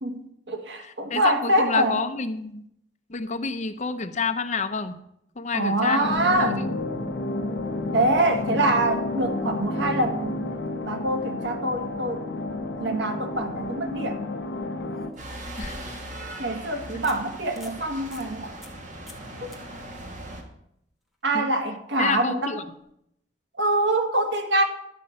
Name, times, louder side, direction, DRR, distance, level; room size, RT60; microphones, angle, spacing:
voice 1, 0.0-2.0 5.5-6.7 7.9-10.5 10.8-12.2 12.8-14.2 16.4-18.6 21.2-22.6 23.6-24.6, right 1 dB, 75° right, 5 dB, 1.6 m, -25 dB
voice 2, 0.8-2.7 3.1-5.0 5.4-6.6 15.6-16.0 21.3-21.5 22.0-22.6, left 4 dB, 40° left, 9 dB, 0.8 m, -29 dB
sound 1, 6.0-15.1, left 2 dB, 80° left, 1.2 m, -31 dB
sound 2, 13.5-13.6 14.9-16.2 16.6-16.7 17.0-17.2 17.5-17.8 18.1-18.3 18.6-18.8 19.1-19.3 19.5-19.6 22.7-22.8, left 1 dB, ahead, 1.5 m, -45 dB
sound 3, 15.2-20.4, right 1 dB, 45° right, 1.8 m, -39 dB
11.5 x 5.3 x 7.8 m, 0.75 s
head